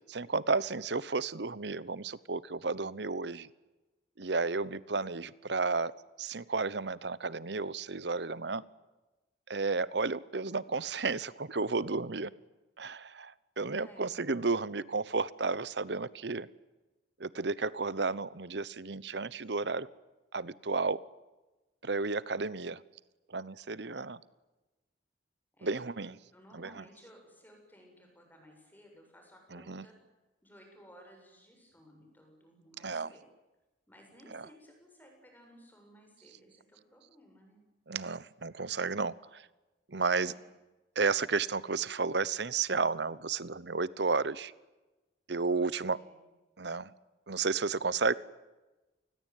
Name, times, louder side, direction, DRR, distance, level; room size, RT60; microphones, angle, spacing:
voice 1, 0.1-3.5 4.2-5.9 6.2-8.6 9.5-12.3 12.8-16.5 17.2-19.9 20.3-21.0 21.8-22.8 23.3-24.2 25.6-26.2 26.6-26.7 29.5-29.8 32.8-33.1 34.3-34.5 37.9-39.5 39.9-40.3 41.0-44.5 45.3-46.0 46.6-46.9 47.3-48.1, right 4 dB, 65° right, 19 dB, 0.9 m, -32 dB
voice 2, 13.8-14.1 25.5-25.8 26.3-29.9 30.4-33.2 33.9-37.6 40.2-40.5 45.9-46.3, equal, 10° left, 2 dB, 7.7 m, -58 dB
28.5 x 20.0 x 9.3 m, 1.1 s
head